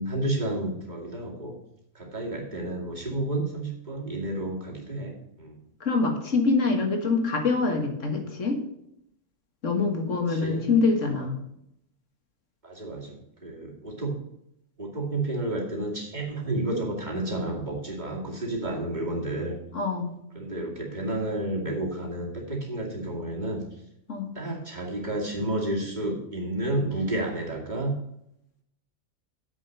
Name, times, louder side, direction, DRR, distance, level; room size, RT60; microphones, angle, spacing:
voice 1, 0.0-1.5 1.9-5.6 10.3-11.2 12.6-14.2 14.8-19.5 20.3-23.6 24.3-27.9, right 1 dB, 35° right, -2 dB, 2.6 m, -31 dB
voice 2, 5.8-8.6 9.6-11.4 19.7-20.1 24.1-24.4, left 4 dB, 75° left, 4 dB, 1.9 m, -25 dB
7.9 x 6.3 x 6.6 m, 0.78 s
omnidirectional pair, 1.3 m